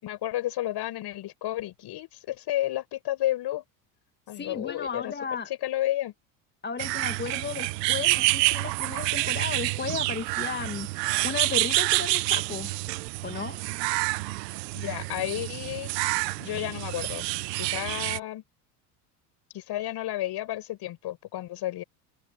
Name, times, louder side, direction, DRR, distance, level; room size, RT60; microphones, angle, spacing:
voice 1, 0.0-3.6 4.3-5.1 5.6-6.1 14.7-15.9 16.4-17.3 17.6-18.4 19.5-21.8, left 14 dB, 55° left, 6.6 m, -31 dB
voice 2, 4.3-5.5 6.6-12.7 13.2-13.6, left 5 dB, 20° left, 1.5 m, -34 dB
sound 1, 6.8-18.2, right 21 dB, 80° right, 0.8 m, -28 dB
open air
hypercardioid pair, 80°, 48 cm